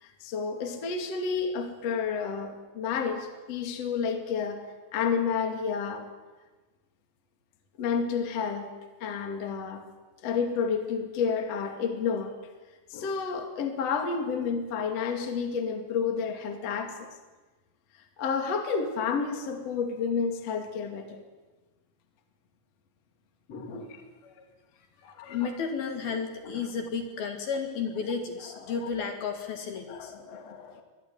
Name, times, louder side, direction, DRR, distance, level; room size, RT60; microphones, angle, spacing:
voice 1, 0.0-4.7 4.9-6.1 7.8-9.8 10.2-12.3 12.9-17.0 18.2-21.2 23.5-24.0 25.2-25.5 26.4-26.6 28.7-28.9 29.9-30.8, left 6 dB, 40° left, 5 dB, 2.8 m, -30 dB
voice 2, 25.0-30.1, left 5 dB, 60° left, 5 dB, 3.6 m, -33 dB
24.5 x 21.5 x 9.4 m, 1.2 s
omnidirectional pair, 5.5 m